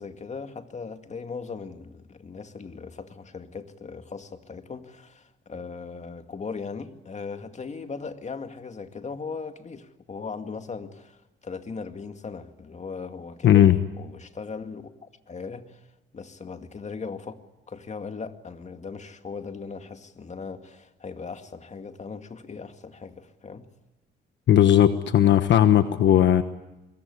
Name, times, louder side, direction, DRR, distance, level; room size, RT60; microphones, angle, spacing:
voice 1, 0.0-11.2 11.4-15.8 16.1-17.4 17.7-23.6, left 5 dB, 35° left, 7 dB, 2.2 m, -38 dB
voice 2, 13.4-13.8 24.5-26.4, left 10 dB, 65° left, 10 dB, 1.2 m, -17 dB
25.5 x 22.5 x 9.7 m, 0.98 s
cardioid pair, 90°, 20 cm